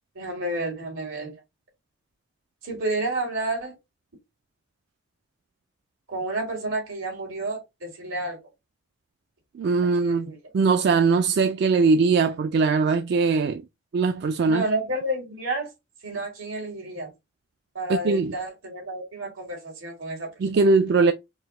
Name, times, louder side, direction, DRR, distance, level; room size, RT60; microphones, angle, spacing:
voice 1, 0.1-1.3 2.6-3.8 6.1-8.4 10.0-10.4 14.4-15.7 16.0-17.1 17.7-20.3, right 2 dB, 85° right, 2.4 m, -30 dB
voice 2, 9.5-13.6 13.9-14.6 17.9-18.3 20.4-21.1, right 4 dB, 55° right, 0.3 m, -21 dB
4.8 x 2.1 x 3.6 m
head